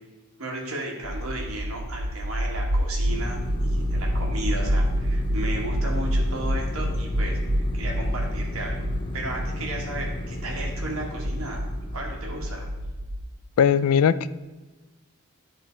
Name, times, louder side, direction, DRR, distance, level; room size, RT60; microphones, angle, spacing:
voice 1, 0.4-8.8 9.1-12.7, right 1 dB, 80° right, -1 dB, 1.5 m, -34 dB
sound 1, 1.0-13.2, equal, 55° right, 1.4 m, -27 dB
sound 2, 3.1-12.9, left 2 dB, 20° left, 0.4 m, -37 dB
voice 2, 13.6-14.3, left 8 dB, 85° left, 16 dB, 0.3 m, -19 dB
11.5 x 3.9 x 4.4 m, 1.2 s
head